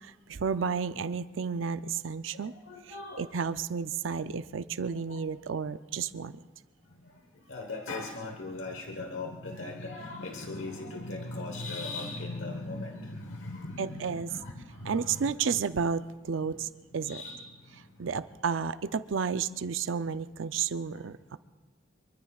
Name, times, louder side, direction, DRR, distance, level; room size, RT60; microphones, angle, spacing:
voice 1, 0.3-2.5 2.9-6.4 13.8-14.3 14.9-16.7 16.9-17.2 18.0-21.4, right 6 dB, 80° right, 13 dB, 0.5 m, -32 dB
voice 2, 2.3-3.4 4.9-5.2 6.8-15.6 16.4-18.1 20.9-21.1, left 2 dB, 90° left, 4 dB, 1.2 m, -40 dB
25.0 x 23.5 x 2.4 m, 1.3 s
head